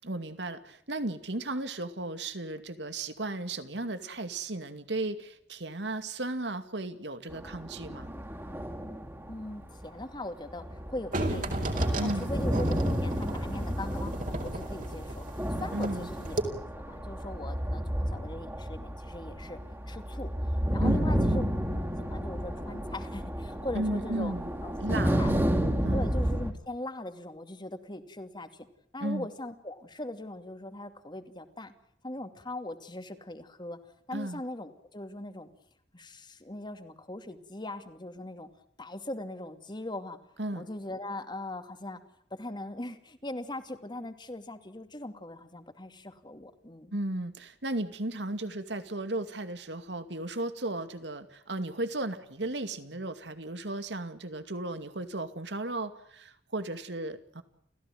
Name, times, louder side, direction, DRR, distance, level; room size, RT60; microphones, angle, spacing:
voice 1, 0.0-8.1 12.0-12.3 15.7-16.1 20.8-21.3 23.7-24.5 24.8-26.1 29.0-29.3 34.1-34.4 40.4-40.7 46.9-57.4, right 2 dB, 80° right, 10 dB, 2.4 m, -35 dB
sound 1, 7.3-10.1 10.5-26.5, equal, 15° right, 3.3 m, -31 dB
voice 2, 9.3-11.7 12.0-15.3 15.6-16.4 16.9-19.6 19.9-20.3 20.7-21.4 22.0-24.4 24.6-25.6 25.9-28.7 28.9-31.7 32.0-33.8 34.1-35.5 35.9-38.5 38.8-40.2 40.5-42.0 42.3-46.9, left 1 dB, 25° left, 8 dB, 2.5 m, -40 dB
sound 2, 11.1-16.0 16.3-16.4, right 1 dB, 50° right, 4.6 m, -33 dB
29.5 x 16.0 x 9.2 m, 0.70 s
head